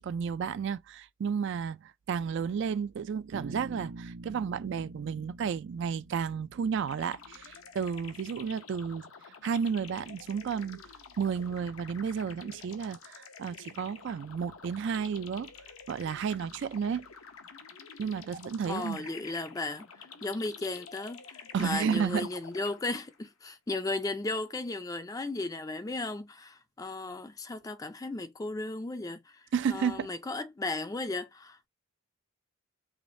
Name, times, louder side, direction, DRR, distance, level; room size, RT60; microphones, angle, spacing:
voice 1, 0.0-9.1 9.4-10.8 11.2-15.5 15.9-17.1 18.0-19.1 21.5-22.3 29.5-30.1, right 6 dB, 55° right, 0.3 m, -32 dB
Bass guitar, 3.3-7.4, right 2 dB, 85° right, 0.7 m, -45 dB
sound 1, 6.9-23.3, left 6 dB, 80° left, 0.7 m, -49 dB
voice 2, 18.6-31.7, left 2 dB, 15° left, 0.4 m, -35 dB
5.0 x 3.1 x 2.6 m
head